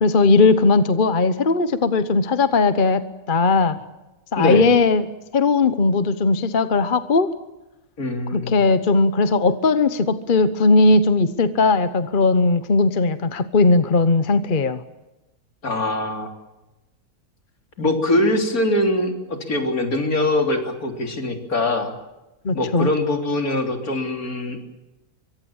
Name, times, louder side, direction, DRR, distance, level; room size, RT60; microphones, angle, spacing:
voice 1, 0.0-3.8 4.3-5.0 5.3-7.3 8.3-14.8 22.4-22.9, left 3 dB, 35° left, 12 dB, 1.1 m, -18 dB
voice 2, 4.4-4.7 8.0-8.5 15.6-16.3 17.8-22.0 22.5-24.6, left 1 dB, 65° left, 4 dB, 3.9 m, -22 dB
24.0 x 23.5 x 7.2 m, 1.0 s
omnidirectional pair, 1.6 m